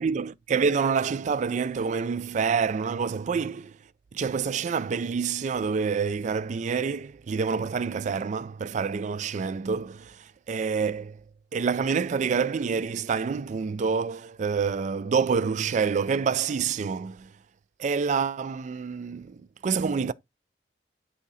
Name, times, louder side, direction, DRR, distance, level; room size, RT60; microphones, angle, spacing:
voice 1, 0.0-3.7 4.1-11.2 11.5-17.3 17.8-20.1, right 5 dB, 40° right, 0.3 m, -27 dB
8.1 x 2.9 x 4.0 m
head